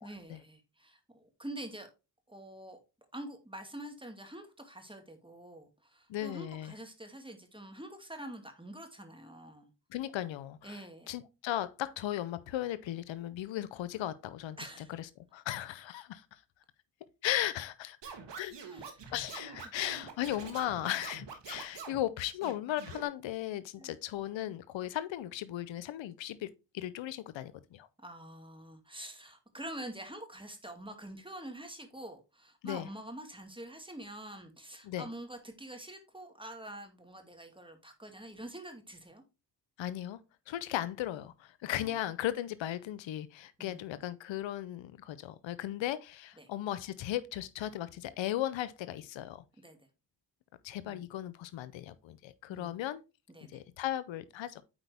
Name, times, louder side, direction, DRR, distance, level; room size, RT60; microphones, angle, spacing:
voice 1, 0.0-1.9 2.3-2.8 3.1-9.7 10.6-11.1 14.6-14.9 18.7-19.0 23.8-24.0 28.0-39.2 41.8-42.0 43.6-43.8 46.4-46.5 49.6-49.9 50.8-51.0 52.5-52.8 53.3-53.6, right 1 dB, 10° right, 2.2 m, -46 dB
voice 2, 6.1-6.7 9.9-10.8 11.1-16.4 17.2-18.6 19.1-26.5 26.7-27.9 32.6-32.9 34.8-35.0 39.8-40.2 40.5-49.4 50.6-53.0 53.5-54.6, left 13 dB, 85° left, 0.6 m, -36 dB
Scratching (performance technique), 18.0-22.0 22.4-23.0, right 5 dB, 70° right, 1.6 m, -45 dB
8.9 x 4.3 x 3.3 m
supercardioid pair, 40°, 44 cm